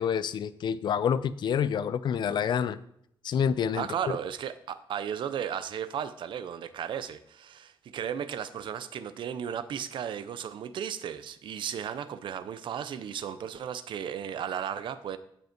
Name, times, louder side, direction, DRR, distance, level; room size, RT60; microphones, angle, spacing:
voice 1, 0.0-2.8 3.2-4.2, left 8 dB, 60° left, 15 dB, 0.5 m, -28 dB
voice 2, 3.7-15.2, right 8 dB, 70° right, 13 dB, 0.7 m, -35 dB
15.5 x 5.5 x 4.5 m, 0.70 s
wide cardioid pair, 175°, 9 cm